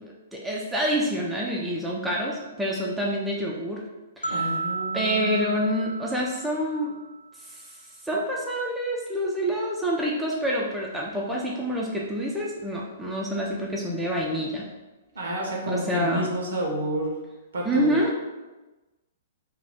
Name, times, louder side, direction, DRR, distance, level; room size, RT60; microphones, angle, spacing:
voice 1, 0.0-3.8 4.2-4.4 4.9-7.0 7.5-7.7 8.0-14.7 15.7-16.3 17.7-18.2, equal, 5° right, -3 dB, 0.4 m, -27 dB
sound 1, 4.2-7.3, right 4 dB, 90° left, 0.4 m, -33 dB
voice 2, 4.3-5.4 15.1-17.2 17.5-18.0, right 1 dB, 65° right, -1 dB, 0.8 m, -30 dB
2.7 x 2.3 x 3.4 m, 1.1 s
figure-of-eight pair, 110°, 0 cm